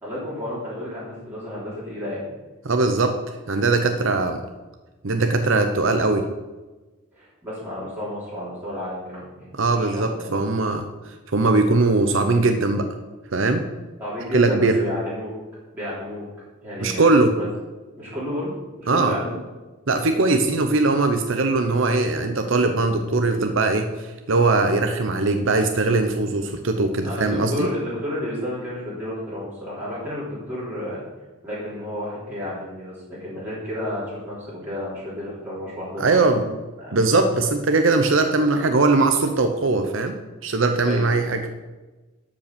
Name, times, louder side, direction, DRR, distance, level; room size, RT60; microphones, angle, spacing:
voice 1, 0.0-2.2 7.2-10.4 14.0-15.3 15.7-16.2 16.6-17.0 17.3-17.5 18.0-19.4 27.0-31.0 31.4-36.3 36.8-37.0 40.8-41.1, left 1 dB, 10° right, -10 dB, 3.2 m, -31 dB
voice 2, 2.6-3.2 3.5-4.4 5.0-6.3 9.6-12.9 13.3-13.6 14.3-14.8 16.8-17.3 18.9-19.2 19.9-27.7 36.0-36.4 36.9-40.2 40.4-41.4, right 3 dB, 65° right, 6 dB, 0.7 m, -20 dB
12.0 x 5.4 x 6.8 m, 1.2 s
head